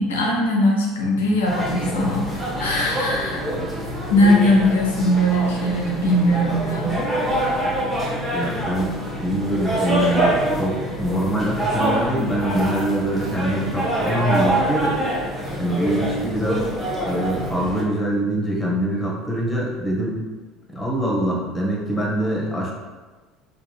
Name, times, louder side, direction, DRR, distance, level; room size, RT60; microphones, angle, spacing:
voice 1, 0.0-2.3 2.6-3.4 4.1-7.0, left 1 dB, 70° left, -2 dB, 0.5 m, -20 dB
sound 1, 1.4-17.8, right 1 dB, 10° right, 1.1 m, -25 dB
voice 2, 8.3-15.0 15.6-16.6 17.0-20.2 20.7-22.7, right 1 dB, 10° left, -3 dB, 1.0 m, -24 dB
3.6 x 2.3 x 3.2 m, 1.3 s
figure-of-eight pair, 65°, 0 cm